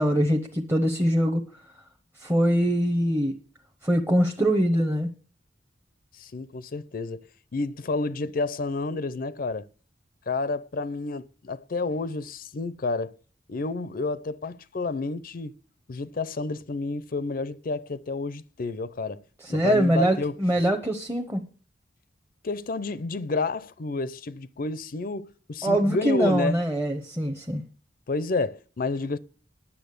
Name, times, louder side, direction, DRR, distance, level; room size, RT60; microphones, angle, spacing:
voice 1, 0.0-1.4 2.2-3.4 3.8-5.1 19.4-21.4 25.6-27.6, equal, 15° right, 0.9 m, -23 dB
voice 2, 6.1-7.2 7.5-9.7 10.3-13.1 13.5-15.5 15.9-19.2 19.5-20.3 22.4-26.6 28.1-29.2, left 3 dB, 50° left, 0.5 m, -30 dB
10.0 x 7.2 x 6.6 m
head